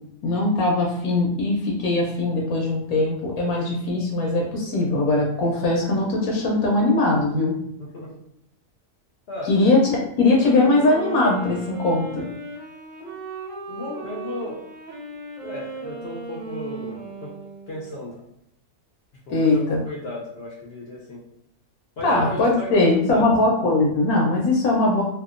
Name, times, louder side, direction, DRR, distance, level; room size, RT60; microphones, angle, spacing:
voice 1, 0.2-7.6 9.5-9.9 10.2-12.3 19.3-19.8 22.0-25.0, left 2 dB, 80° left, -1 dB, 1.0 m, -20 dB
voice 2, 7.8-8.1 9.3-9.5 13.0-13.1 13.7-14.6 15.4-17.3 17.7-18.2 19.3-21.2 22.0-23.3, left 1 dB, 60° left, -4 dB, 0.6 m, -35 dB
Wind instrument woodwind instrument, 10.2-17.9, right 3 dB, 70° right, 0.9 m, -36 dB
2.8 x 2.2 x 2.4 m, 0.76 s
omnidirectional pair, 1.6 m